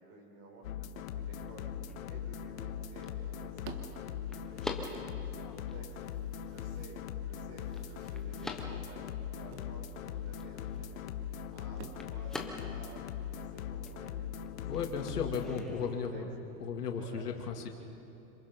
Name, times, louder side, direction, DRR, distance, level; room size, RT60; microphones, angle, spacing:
voice 1, 0.0-16.3 16.9-17.5, right 2 dB, 30° right, 1 dB, 5.0 m, -54 dB
sound 1, 0.6-15.6, left 9 dB, 60° left, 1.3 m, -40 dB
sound 2, 0.6-16.1, left 2 dB, ahead, 0.4 m, -49 dB
sound 3, 2.7-13.7, right 7 dB, 50° right, 1.6 m, -56 dB
voice 2, 14.6-16.3 16.6-17.7, left 6 dB, 85° left, 3 dB, 2.7 m, -35 dB
27.0 x 20.0 x 5.4 m, 2.9 s
hypercardioid pair, 145°, 46 cm